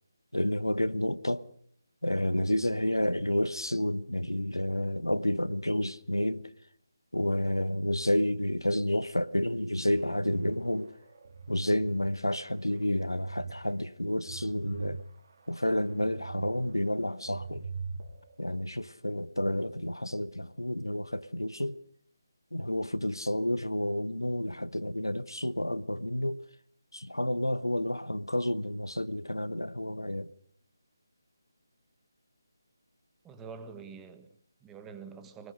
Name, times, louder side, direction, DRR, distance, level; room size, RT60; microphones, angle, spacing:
voice 1, 0.3-1.5 2.0-6.5 7.1-11.0 11.5-15.0 15.5-17.7 18.4-21.8 22.5-26.4 26.9-30.3, left 1 dB, 90° left, 1.1 m, -30 dB
sound 1, 9.9-12.0 12.5-13.5 13.9-16.5 16.9-18.3, right 5 dB, 45° right, 3.2 m, -42 dB
voice 2, 33.2-35.5, right 5 dB, 10° right, 1.3 m, -46 dB
24.5 x 20.0 x 6.4 m
figure-of-eight pair, 155°, 2 cm